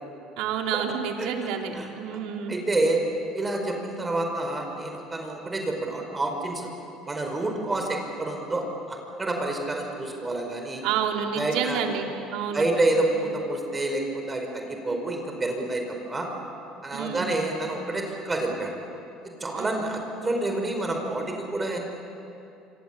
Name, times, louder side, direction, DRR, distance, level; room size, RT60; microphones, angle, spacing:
voice 1, 0.4-2.6 10.8-12.7 13.1-13.3 16.9-17.4 19.5-19.8, right 7 dB, 75° right, 2 dB, 3.3 m, -29 dB
voice 2, 1.7-2.2 2.5-3.0 3.3-6.7 7.1-10.8 11.3-11.8 12.5-16.3 16.8-18.8 19.4-21.8, right 2 dB, 20° right, 3 dB, 4.8 m, -28 dB
26.0 x 26.0 x 8.5 m, 2.8 s
supercardioid pair, 105°, 0 cm